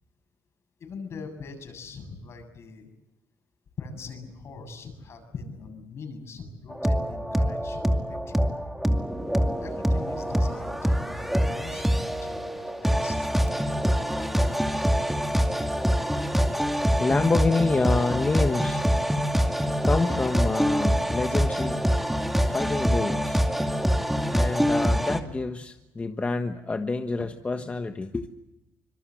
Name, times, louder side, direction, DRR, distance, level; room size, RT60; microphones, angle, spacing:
voice 1, 0.8-2.9 3.8-8.4 9.6-13.3, left 4 dB, 50° left, 7 dB, 7.5 m, -42 dB
sound 1, 6.7-25.2, equal, 5° right, 2.4 m, -25 dB
voice 2, 17.0-18.8 19.8-21.8 22.5-23.4 24.3-28.3, left 3 dB, 25° left, 7 dB, 1.4 m, -27 dB
26.0 x 22.5 x 7.9 m, 0.96 s
supercardioid pair, 85°, 6 cm